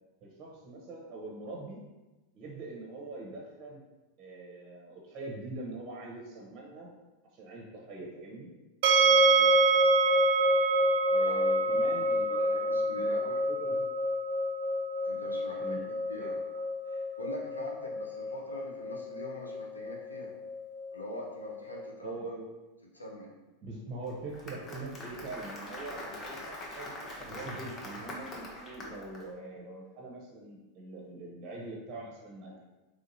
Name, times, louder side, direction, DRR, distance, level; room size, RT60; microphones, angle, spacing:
voice 1, 0.2-1.8 2.3-3.8 4.2-6.9 7.3-8.5 11.1-13.3 13.6-13.9 15.6-15.8 16.2-16.3 22.0-22.5 23.6-26.9 27.2-32.6, right 2 dB, 35° right, -2 dB, 0.8 m, -43 dB
sound 1, 8.8-21.8, right 2 dB, 55° right, 0.3 m, -27 dB
voice 2, 9.0-9.6 11.2-11.4 12.2-13.4 15.0-15.8 16.1-16.3 16.8-20.3 20.9-22.2 22.9-23.3, left 1 dB, 85° left, -2 dB, 0.7 m, -44 dB
Applause, 24.1-29.2, left 1 dB, 30° left, 0.8 m, -43 dB
3.9 x 3.1 x 2.6 m, 1.1 s
figure-of-eight pair, 85°, 0 cm